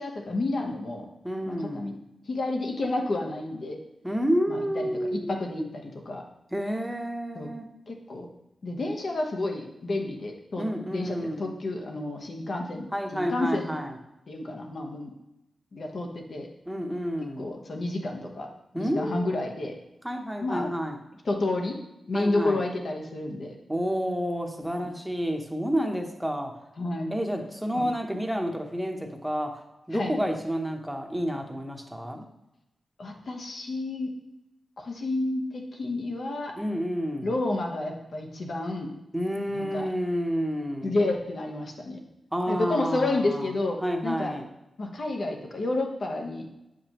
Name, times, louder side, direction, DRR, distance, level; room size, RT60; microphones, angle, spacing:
voice 1, 0.0-1.1 1.5-1.9 2.3-3.8 4.5-6.2 7.3-7.5 7.9-8.3 8.6-13.8 14.3-15.1 15.7-16.5 17.4-18.5 18.7-19.7 20.4-20.7 21.2-21.8 22.1-23.6 24.8-24.9 26.8-27.2 27.7-27.9 29.9-30.1 33.0-34.1 34.8-36.5 37.2-38.9 39.5-39.9 40.8-42.0 42.5-44.4 44.8-46.5, left 2 dB, 65° left, 2 dB, 1.1 m, -30 dB
voice 2, 1.2-1.8 4.0-5.3 6.5-7.7 10.6-11.5 12.9-13.9 16.7-17.5 18.7-19.3 20.0-21.0 22.1-22.6 23.7-26.5 27.1-32.3 36.6-37.3 39.1-40.9 42.3-43.5 43.8-44.5, equal, 5° right, 3 dB, 0.9 m, -30 dB
7.9 x 5.0 x 3.0 m, 0.90 s
wide cardioid pair, 90°, 0 cm